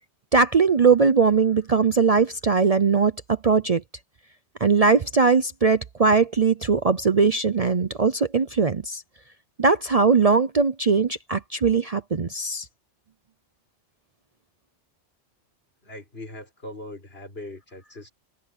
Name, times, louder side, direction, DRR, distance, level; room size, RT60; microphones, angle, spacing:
voice 1, 0.3-3.8 4.6-9.0 9.6-12.6, right 5 dB, 40° right, 0.7 m, -20 dB
voice 2, 15.8-18.1, left 1 dB, 60° left, 5.9 m, -40 dB
omnidirectional pair, 1.2 m